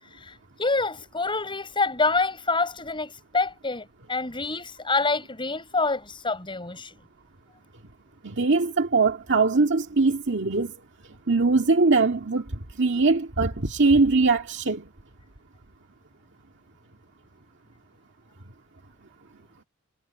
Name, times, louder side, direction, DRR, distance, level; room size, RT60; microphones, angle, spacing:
voice 1, 0.0-6.9, left 3 dB, 20° left, 7.3 m, -27 dB
voice 2, 8.2-10.7 11.3-12.5 12.8-14.9, right 3 dB, 55° right, 2.0 m, -21 dB
head